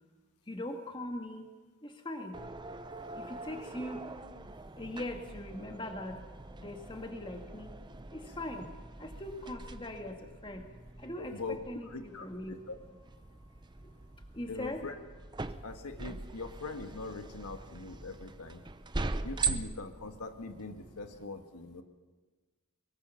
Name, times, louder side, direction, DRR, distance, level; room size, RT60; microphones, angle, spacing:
voice 1, 0.5-1.5 1.8-2.4 3.1-4.0 4.8-6.2 6.6-7.7 8.1-8.7 9.0-10.6 11.0-12.6 14.3-14.9, left 1 dB, 20° left, 4 dB, 1.9 m, -41 dB
sound 1, 2.3-21.2, right 3 dB, 20° right, 0.6 m, -42 dB
voice 2, 11.2-11.6 11.9-12.8 14.5-15.0 15.6-18.6 19.2-21.8, left 3 dB, 90° left, 6 dB, 1.7 m, -42 dB
23.0 x 22.5 x 5.9 m, 1.3 s
head